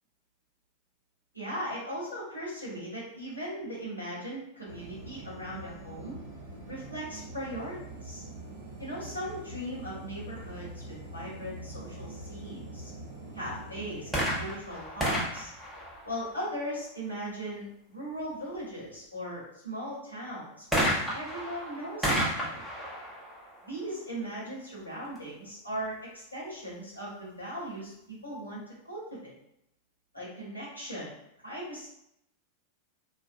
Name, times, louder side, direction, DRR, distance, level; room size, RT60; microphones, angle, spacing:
voice 1, 1.3-6.2 6.7-8.3 8.8-12.9 13.3-15.5 16.0-22.7 23.6-29.3 30.1-31.1 31.4-31.9, equal, 85° left, -7 dB, 1.0 m, -38 dB
sound 1, 4.7-14.6, right 2 dB, 55° right, 0.7 m, -44 dB
sound 2, 14.0-16.6 20.7-24.4 25.2-25.3, equal, 5° right, 0.7 m, -32 dB
2.4 x 2.1 x 2.5 m, 0.80 s
figure-of-eight pair, 90°, 0 cm